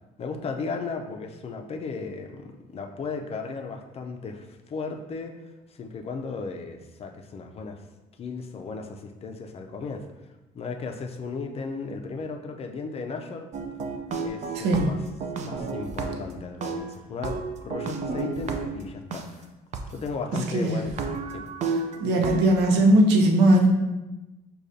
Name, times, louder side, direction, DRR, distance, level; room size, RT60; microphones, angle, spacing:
voice 1, 0.2-7.8 8.2-10.1 10.5-13.5 14.2-15.0 15.4-19.5 19.9-20.9 21.3-21.4, left 4 dB, 35° left, 4 dB, 0.4 m, -35 dB
sound 1, 13.5-16.3 16.6-19.2 19.7-19.8 20.4-20.5 20.9-22.5, right 4 dB, 45° right, 0.4 m, -32 dB
voice 2, 14.5-14.9 20.5-20.8 22.0-23.7, right 1 dB, 90° right, 2 dB, 0.7 m, -19 dB
6.3 x 2.3 x 2.7 m, 1.0 s
cardioid pair, 110°, 17 cm